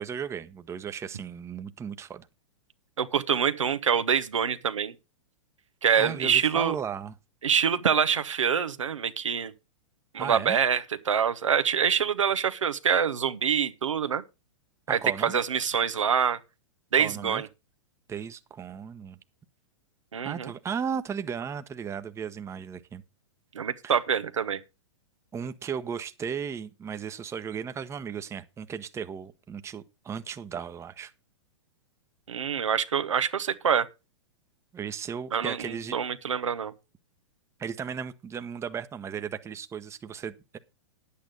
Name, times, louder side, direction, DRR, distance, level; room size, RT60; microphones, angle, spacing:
voice 1, 0.0-2.3 5.9-7.1 10.2-10.6 14.9-15.4 17.0-17.4 18.1-19.2 20.2-23.0 23.8-24.0 25.3-31.1 34.7-36.0 37.6-40.6, right 7 dB, 15° right, 0.9 m, -35 dB
voice 2, 3.0-4.9 5.8-6.8 7.4-9.5 10.1-14.2 14.9-16.4 16.9-17.5 20.1-20.5 23.5-24.6 32.3-33.9 35.3-36.7, right 7 dB, 85° right, 1.2 m, -25 dB
10.5 x 8.6 x 5.2 m
hypercardioid pair, 115°, 16 cm